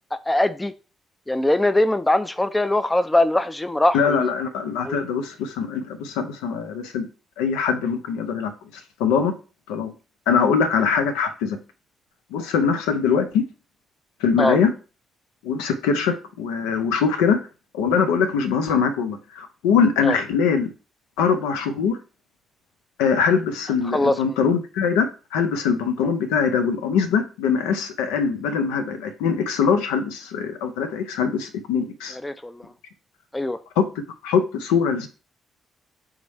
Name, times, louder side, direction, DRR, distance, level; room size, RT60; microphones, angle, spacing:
voice 1, 0.1-0.7 1.3-4.3 4.9-5.0 14.4-14.6 20.0-20.2 23.9-24.4 32.2-32.6 33.3-33.6, left 1 dB, 15° left, 12 dB, 0.4 m, -21 dB
voice 2, 3.9-7.1 7.4-9.3 9.7-9.9 10.3-11.6 12.3-13.5 14.2-14.7 15.4-17.4 17.7-20.7 21.2-22.0 23.0-32.2 33.8-33.9 34.2-35.1, left 6 dB, 75° left, 9 dB, 0.5 m, -22 dB
3.6 x 3.1 x 4.0 m, 0.33 s
hypercardioid pair, 45°, 0 cm